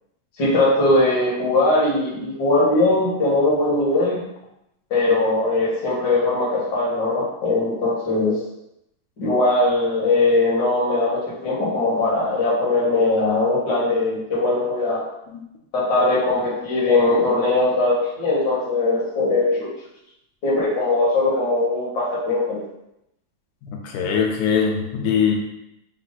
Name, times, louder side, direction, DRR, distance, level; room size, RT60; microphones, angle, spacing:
voice 1, 0.4-4.2 4.9-8.4 9.2-15.0 15.7-19.7 20.4-22.6, left 2 dB, 45° left, -7 dB, 1.6 m, -20 dB
voice 2, 23.6-25.3, left 7 dB, 90° left, 1 dB, 2.1 m, -22 dB
5.1 x 2.2 x 4.0 m, 0.84 s
omnidirectional pair, 3.3 m